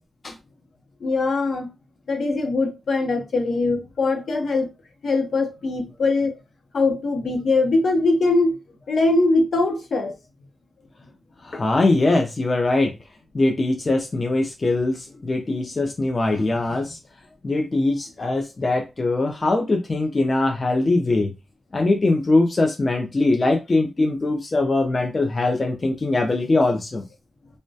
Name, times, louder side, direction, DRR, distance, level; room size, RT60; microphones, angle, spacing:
voice 1, 1.0-1.7 2.1-4.7 5.0-6.4 6.7-8.6 8.9-10.1, left 3 dB, 70° left, 0.7 m, -21 dB
voice 2, 11.4-13.0 13.3-17.0 17.4-21.3 21.7-27.0, left 2 dB, 35° left, 0.4 m, -21 dB
2.2 x 2.1 x 2.6 m
cardioid pair, 85°, 0 cm